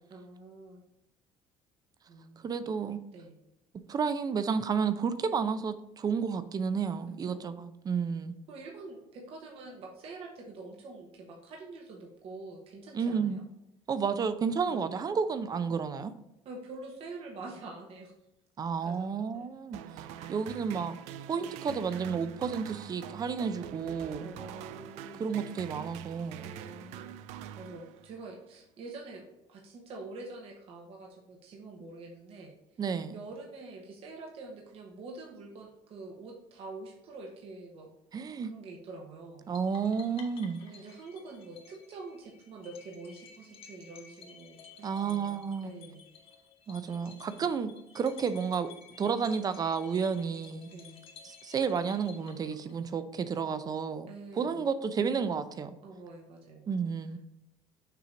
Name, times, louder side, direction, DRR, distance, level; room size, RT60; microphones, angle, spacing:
voice 1, 0.1-0.8 2.1-2.5 3.1-3.4 7.3-7.5 8.5-13.4 14.7-15.0 16.4-18.1 18.8-19.5 19.8-20.4 21.3-21.6 24.2-25.3 26.4-32.5 33.1-37.9 38.4-39.5 40.6-46.0 47.0-47.5 50.2-50.4 50.7-51.0 54.1-54.7 55.8-56.7, right 3 dB, 60° right, 0 dB, 1.2 m, -46 dB
voice 2, 2.4-3.0 3.9-8.3 12.9-13.4 13.9-16.1 18.6-19.8 20.3-21.0 21.3-24.3 25.2-26.5 32.8-33.1 38.1-38.5 39.5-40.6 44.8-45.7 46.7-48.7 49.0-50.7 51.2-54.1 54.3-55.8 56.7-57.2, right 6 dB, 35° right, 12 dB, 0.6 m, -31 dB
sound 1, 19.7-28.3, right 11 dB, 85° right, 0.4 m, -44 dB
sound 2, 39.5-53.0, left 6 dB, 55° left, 1.2 m, -54 dB
6.7 x 3.1 x 5.0 m, 0.87 s
cardioid pair, 105°, 11 cm